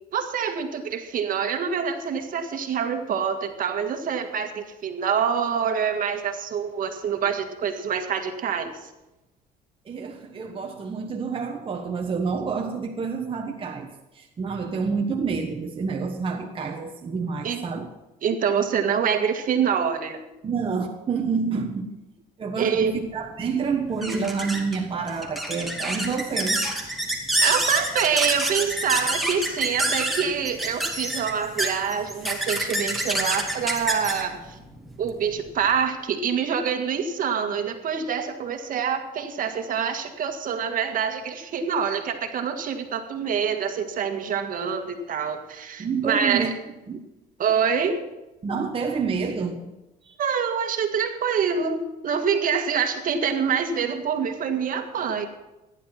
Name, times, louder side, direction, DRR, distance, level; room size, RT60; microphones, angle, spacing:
voice 1, 0.1-8.7 17.4-17.7 18.2-20.2 22.6-23.0 27.4-34.6 35.0-46.5 47.4-48.0 50.2-55.3, right 7 dB, 55° right, 6 dB, 1.8 m, -26 dB
voice 2, 9.8-17.9 20.4-21.9 22.4-26.6 45.8-46.5 46.9-47.0 48.4-49.6 50.0-50.2, right 5 dB, 30° right, 2 dB, 1.2 m, -28 dB
sound 1, 22.9-35.8, right 1 dB, ahead, 2.4 m, -28 dB
14.5 x 11.0 x 5.8 m, 1.0 s
cardioid pair, 110°, 17 cm